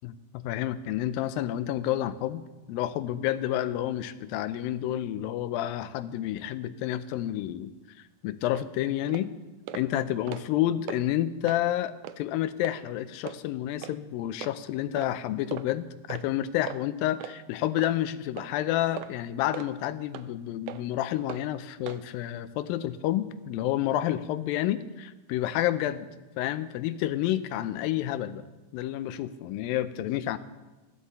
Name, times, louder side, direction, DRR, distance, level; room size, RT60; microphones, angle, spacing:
voice 1, 0.0-2.4 2.7-7.7 8.2-9.3 9.7-26.1 26.4-28.4 28.7-30.4, left 13 dB, 85° left, 12 dB, 2.4 m, -29 dB
sound 1, 8.5-8.7 9.1-9.3 9.7-9.9 10.2-10.6 10.9-11.0 11.4-11.6 12.0-12.2 12.6-12.8 13.3-13.4 13.8-14.0 14.4-14.5 15.0-15.1 15.5-15.7 16.1-16.3 16.7-16.8 17.2-17.4 17.8-18.0 18.4-18.5 19.0-19.1 19.5-19.7 20.1-20.3 20.7-20.8 21.3-21.4 21.9-22.0, right 12 dB, 85° right, 1.7 m, -38 dB
16.0 x 12.0 x 4.2 m, 1.1 s
omnidirectional pair, 4.1 m